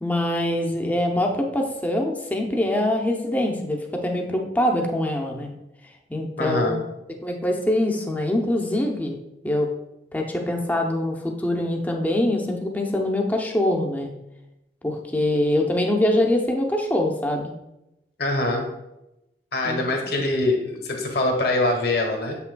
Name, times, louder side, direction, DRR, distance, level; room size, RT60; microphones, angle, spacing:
voice 1, 0.0-5.5 6.1-6.8 7.2-9.2 9.4-9.7 10.1-14.1 14.8-17.5 19.6-19.8, left 1 dB, 10° left, 1 dB, 0.6 m, -24 dB
voice 2, 6.4-6.8 18.2-18.6 19.5-22.4, left 2 dB, 60° left, 1 dB, 1.3 m, -23 dB
7.4 x 5.8 x 2.3 m, 0.91 s
head